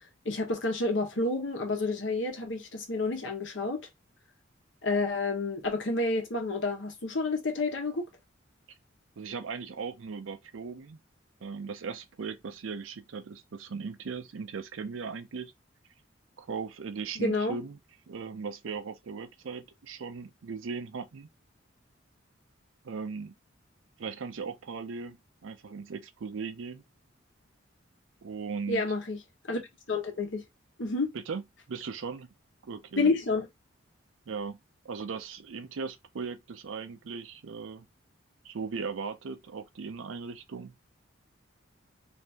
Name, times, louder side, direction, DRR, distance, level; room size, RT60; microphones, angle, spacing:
voice 1, 0.2-3.9 4.8-8.0 17.2-17.6 28.7-29.2 29.5-29.6 29.9-30.4 30.8-31.1 33.0-33.5, left 3 dB, 70° left, 0.9 m, -29 dB
voice 2, 9.2-11.0 11.4-15.5 16.4-17.8 18.1-21.3 22.8-23.3 24.0-26.8 28.2-28.8 31.1-31.4 31.7-32.3 32.6-33.1 34.3-34.6 34.8-37.9 38.4-40.8, right 5 dB, 85° right, 0.5 m, -38 dB
2.7 x 2.6 x 3.3 m
head